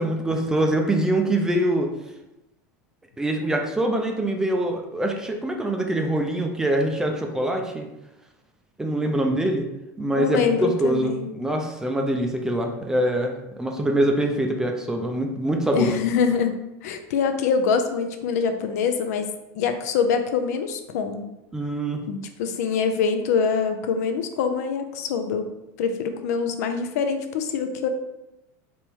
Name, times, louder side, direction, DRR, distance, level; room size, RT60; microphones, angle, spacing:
voice 1, 0.0-1.9 3.2-7.9 8.8-9.7 10.0-15.9 21.5-22.0, right 1 dB, 5° right, 3 dB, 0.4 m, -24 dB
voice 2, 10.2-11.3 15.7-19.3 19.5-21.3 22.1-25.5 25.8-27.9, left 6 dB, 85° left, 7 dB, 0.5 m, -24 dB
3.4 x 3.0 x 4.4 m, 0.94 s
supercardioid pair, 155°, 8 cm